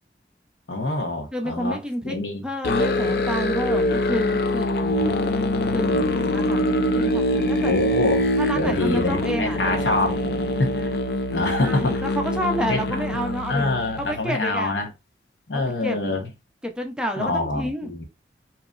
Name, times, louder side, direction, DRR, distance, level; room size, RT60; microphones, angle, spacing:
voice 1, 0.7-1.8 2.0-2.4 4.8-6.1 7.6-8.3 8.5-10.2 10.6-10.9 11.3-12.1 12.7-14.9 15.5-16.3 17.2-18.0, left 2 dB, 85° left, 1.1 m, -26 dB
voice 2, 1.3-2.2 2.4-5.0 5.7-6.6 6.9-7.7 8.4-10.5 11.6-13.6 14.0-14.7 15.5-16.0 16.6-17.9, equal, 5° right, 0.5 m, -30 dB
Musical instrument, 2.6-14.2, left 1 dB, 60° left, 0.4 m, -24 dB
3.9 x 2.9 x 2.4 m
head